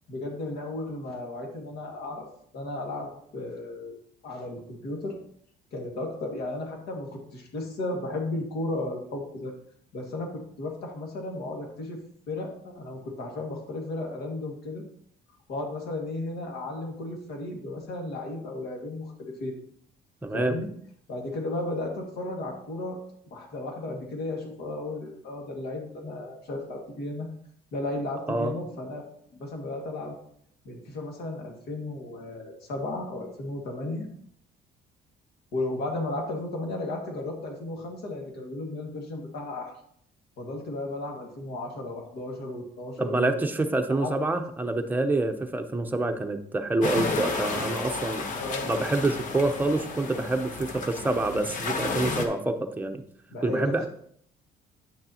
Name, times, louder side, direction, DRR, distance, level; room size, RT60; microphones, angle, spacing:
voice 1, 0.1-2.3 2.5-4.0 4.2-5.2 5.7-9.5 9.9-12.0 12.3-14.8 15.5-19.5 20.3-20.7 21.1-27.3 27.7-29.0 29.4-30.2 30.6-34.1 35.5-39.7 40.4-43.4 43.9-44.2 48.3-48.7 53.3-53.9, left 2 dB, 70° left, 1 dB, 2.0 m, -34 dB
voice 2, 20.2-20.6 28.3-28.5 43.0-48.2 48.6-53.0 53.4-53.9, right 2 dB, 10° right, 5 dB, 0.8 m, -27 dB
sound 1, 46.8-52.3, left 3 dB, 50° left, 1.2 m, -32 dB
9.3 x 6.5 x 2.9 m, 0.65 s
cardioid pair, 110°, 17 cm